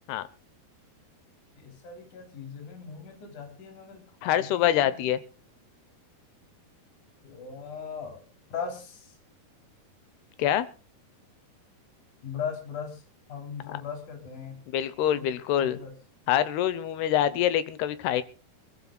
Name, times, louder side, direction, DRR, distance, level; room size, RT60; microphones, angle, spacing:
voice 1, 1.6-5.1 7.2-8.2 8.5-9.1 12.2-13.0 13.3-14.6 15.1-15.3 15.5-15.9 17.3-17.5, left 6 dB, 50° left, 3 dB, 4.7 m, -39 dB
voice 2, 4.2-5.2 10.4-10.7 13.7-13.8 14.7-15.8 16.3-18.2, left 11 dB, 85° left, 14 dB, 3.0 m, -25 dB
24.5 x 14.5 x 2.3 m, 0.35 s
omnidirectional pair, 4.5 m